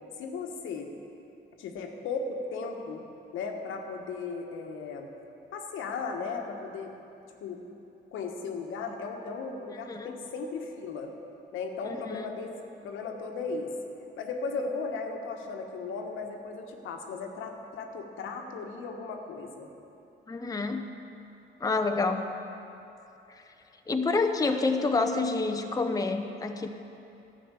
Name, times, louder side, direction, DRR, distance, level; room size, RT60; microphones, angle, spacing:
voice 1, 0.2-0.9 1.6-3.0 3.3-5.1 5.5-6.9 7.4-7.6 8.1-11.1 11.5-12.5 12.8-13.7 14.2-19.7, left 4 dB, 85° left, 3 dB, 1.2 m, -36 dB
voice 2, 11.9-12.2 20.3-20.8 21.6-22.3 23.9-26.7, left 3 dB, 20° left, 5 dB, 0.7 m, -28 dB
12.0 x 6.0 x 8.1 m, 2.9 s
cardioid pair, 90°, 20 cm